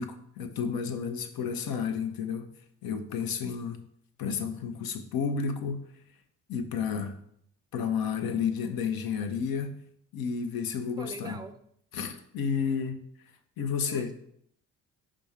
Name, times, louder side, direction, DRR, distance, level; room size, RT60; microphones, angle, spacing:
voice 1, 0.0-2.5 2.8-3.8 4.2-5.8 6.5-7.2 7.7-9.7 10.1-11.4 11.9-13.0 13.6-14.1, left 6 dB, 55° left, 8 dB, 0.9 m, -31 dB
voice 2, 11.0-11.5 13.9-14.1, right 4 dB, 10° right, 10 dB, 0.5 m, -41 dB
5.1 x 3.7 x 5.7 m, 0.69 s
hypercardioid pair, 55°, 42 cm